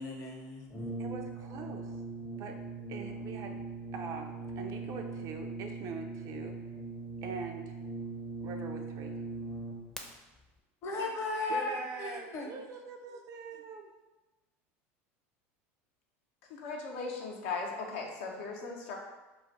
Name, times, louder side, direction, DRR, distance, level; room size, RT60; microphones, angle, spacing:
voice 1, 0.0-0.9 10.8-12.5, left 3 dB, 45° left, 0 dB, 0.8 m, -36 dB
Brass instrument, 0.7-10.0, right 3 dB, 10° left, 0.5 m, -40 dB
voice 2, 1.0-1.9 2.4-2.6 2.9-3.6 3.9-6.6 7.2-7.7 8.4-9.3 11.5-13.9, right 5 dB, 50° right, 4 dB, 0.4 m, -43 dB
voice 3, 16.5-18.9, left 4 dB, 80° left, 0 dB, 0.6 m, -38 dB
2.5 x 2.4 x 4.0 m, 1.1 s
supercardioid pair, 95°, 7 cm